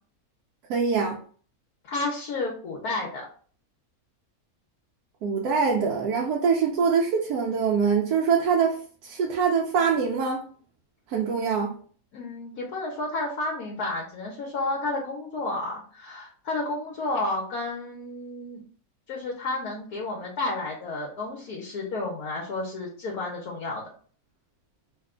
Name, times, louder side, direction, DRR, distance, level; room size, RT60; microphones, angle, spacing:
voice 1, 0.7-1.2 5.2-10.4 11.1-11.7, right 6 dB, 85° right, -1 dB, 1.1 m, -24 dB
voice 2, 1.9-3.2 12.1-18.6 19.1-23.9, left 2 dB, 75° left, -1 dB, 1.3 m, -31 dB
3.2 x 2.2 x 3.6 m, 0.44 s
omnidirectional pair, 1.6 m